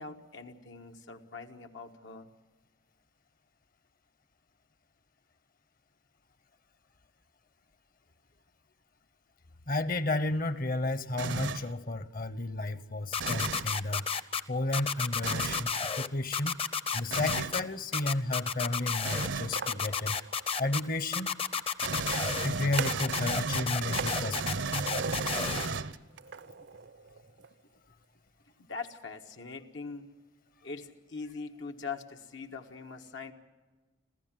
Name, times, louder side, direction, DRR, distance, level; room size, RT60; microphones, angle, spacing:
voice 1, 0.0-2.3 28.6-30.1 30.6-33.3, left 4 dB, 90° left, 1.5 m, -42 dB
voice 2, 9.7-14.1 14.5-16.6 16.9-20.2 20.6-21.4 22.4-24.8, left 2 dB, 50° left, 1.0 m, -32 dB
sound 1, 11.2-11.7 13.2-13.7 15.2-15.7 17.1-17.6 19.0-19.5 21.8-26.2, right 4 dB, 85° right, 0.9 m, -34 dB
sound 2, 13.1-14.4 14.7-16.1 16.3-17.6 17.9-19.3 19.5-20.8 21.1-22.5 22.7-25.7, left 6 dB, 30° left, 0.7 m, -31 dB
sound 3, 19.5-20.8 22.0-23.2 23.5-25.8 26.2-27.5, right 5 dB, 65° right, 0.5 m, -41 dB
26.5 x 15.0 x 7.5 m
head